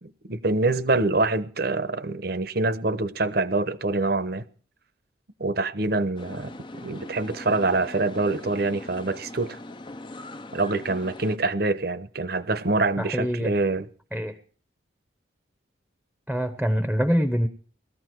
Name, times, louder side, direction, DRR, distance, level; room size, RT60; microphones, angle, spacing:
voice 1, 0.0-4.4 5.4-6.5 6.8-9.6 10.5-13.9, right 2 dB, 50° right, 0.9 m, -25 dB
sound 1, 6.2-11.4, left 2 dB, 25° left, 0.6 m, -41 dB
voice 2, 13.0-13.5 14.1-14.4 16.3-17.5, equal, ahead, 0.9 m, -24 dB
19.0 x 14.0 x 4.6 m
head